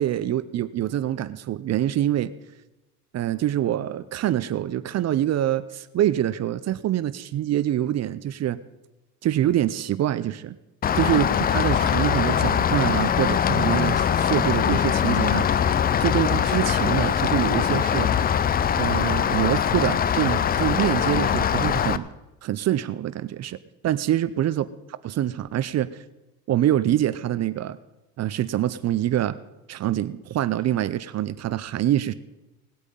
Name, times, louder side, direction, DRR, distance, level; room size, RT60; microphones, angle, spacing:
voice 1, 0.0-2.3 3.1-8.6 9.2-10.6 10.9-15.5 16.0-18.1 18.8-22.1 22.4-23.6 23.8-24.7 25.0-26.0 26.5-27.8 28.2-29.4 29.7-32.1, right 12 dB, 35° right, 16 dB, 0.6 m, -25 dB
Rain, 10.8-22.0, left 8 dB, 20° left, 0.4 m, -22 dB
19.0 x 8.2 x 5.4 m, 1.0 s
hypercardioid pair, 80°, 46 cm